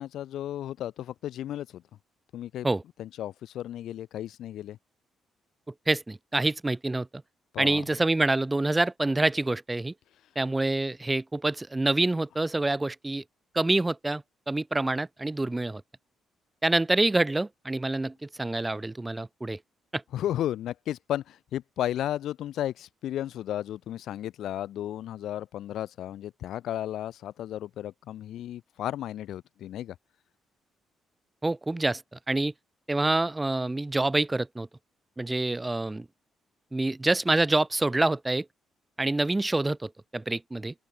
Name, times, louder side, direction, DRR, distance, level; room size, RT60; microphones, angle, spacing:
voice 1, 0.0-1.8 2.3-2.7 3.0-4.8 7.5-7.8 20.1-30.0, left 12 dB, 75° left, 5.5 m, -34 dB
voice 2, 5.7-7.1 7.6-9.9 10.3-13.2 13.5-15.8 16.6-19.6 19.9-20.0 31.4-32.5 32.9-34.7 35.2-36.1 36.7-38.5 39.0-40.7, right 2 dB, 15° right, 6.2 m, -26 dB
open air
cardioid pair, 90°, 0 cm